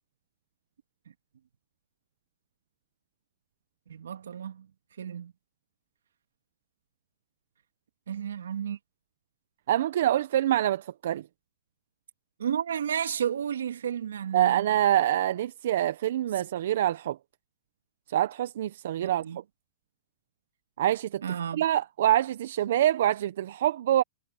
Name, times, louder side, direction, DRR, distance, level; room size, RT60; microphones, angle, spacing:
voice 1, 3.9-4.7 5.0-5.3 8.1-8.8 12.4-14.6 19.0-19.4 21.2-21.6, right 8 dB, 80° right, 2.3 m, -32 dB
voice 2, 9.7-11.2 14.3-17.2 18.1-19.2 20.8-21.2 21.5-24.0, right 12 dB, 65° right, 1.0 m, -25 dB
hypercardioid pair, 130°, 0 cm